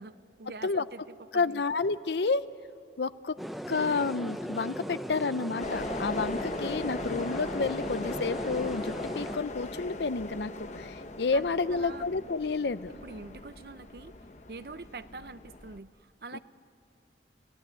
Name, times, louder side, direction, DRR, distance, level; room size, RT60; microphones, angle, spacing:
voice 1, 0.0-1.6 11.3-12.1 13.0-14.1 14.5-16.4, right 3 dB, 60° right, 13 dB, 0.6 m, -45 dB
voice 2, 1.3-2.4 3.0-3.4 3.7-12.9 16.3-16.4, left 4 dB, 75° left, 15 dB, 0.6 m, -30 dB
sound 1, 3.4-9.4, equal, ahead, 0.7 m, -37 dB
sound 2, 5.6-15.8, left 2 dB, 40° left, 0.9 m, -39 dB
30.0 x 15.5 x 9.7 m, 2.3 s
head